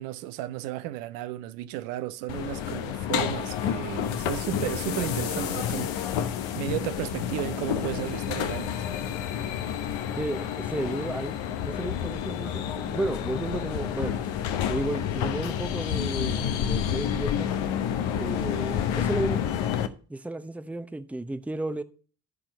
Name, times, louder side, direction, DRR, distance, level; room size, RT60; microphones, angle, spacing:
voice 1, 0.0-6.1 6.5-8.8, right 14 dB, 80° right, 0.7 m, -34 dB
sound 1, 2.3-19.9, left 9 dB, 70° left, 0.9 m, -29 dB
voice 2, 10.2-14.2 14.7-17.5 18.1-21.8, right 2 dB, 5° right, 0.7 m, -33 dB
12.5 x 4.4 x 5.3 m
hypercardioid pair, 40°, 49 cm